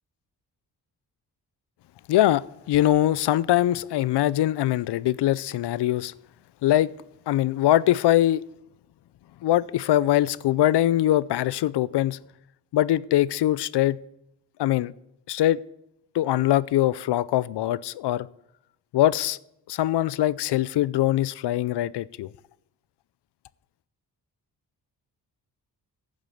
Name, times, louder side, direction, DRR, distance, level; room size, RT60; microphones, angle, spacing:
voice 1, 2.1-6.1 6.6-6.9 7.3-8.4 9.4-12.2 12.7-14.0 14.6-14.9 15.3-15.6 16.1-18.3 18.9-19.4 19.7-22.3, left 13 dB, 75° left, 0.5 m, -22 dB
11.0 x 7.4 x 8.3 m
cardioid pair, 85°, 41 cm